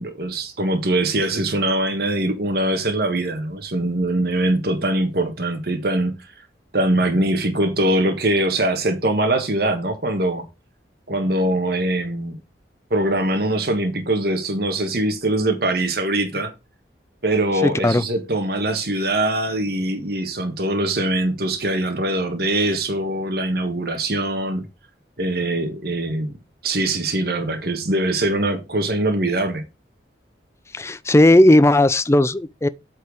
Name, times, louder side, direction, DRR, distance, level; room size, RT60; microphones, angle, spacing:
voice 1, 0.0-6.1 6.7-10.4 11.1-12.4 12.9-16.5 17.2-24.6 25.2-26.3 26.6-29.6, right 1 dB, 60° right, 1.5 m, -22 dB
voice 2, 17.6-18.0 30.7-32.7, left 1 dB, 15° left, 0.4 m, -15 dB
8.4 x 4.5 x 6.4 m
head